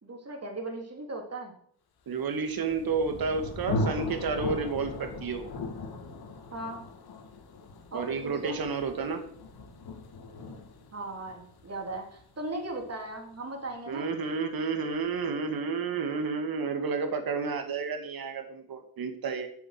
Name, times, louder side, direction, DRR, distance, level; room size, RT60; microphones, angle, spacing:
voice 1, 0.0-1.5 6.5-6.8 7.9-8.6 10.9-14.1, right 2 dB, 35° right, 2 dB, 3.3 m, -38 dB
voice 2, 2.1-5.5 7.9-9.2 13.9-19.5, right 4 dB, 60° right, 6 dB, 2.1 m, -31 dB
Thunder, 2.3-13.9, left 2 dB, 65° left, 2.0 m, -38 dB
8.2 x 7.0 x 6.0 m, 0.64 s
hypercardioid pair, 40°, 41 cm